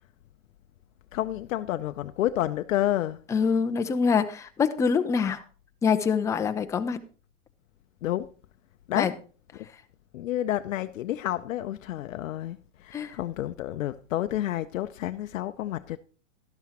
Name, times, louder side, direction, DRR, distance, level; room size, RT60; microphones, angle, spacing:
voice 1, 1.1-3.2 8.0-8.3 8.9-9.1 9.5-9.7 10.1-16.0, left 13 dB, 85° left, 0.5 m, -30 dB
voice 2, 3.3-5.4 5.8-7.0 8.9-9.1 12.9-13.1, left 6 dB, 10° left, 0.4 m, -25 dB
12.0 x 11.5 x 2.9 m
hypercardioid pair, 120°, 38 cm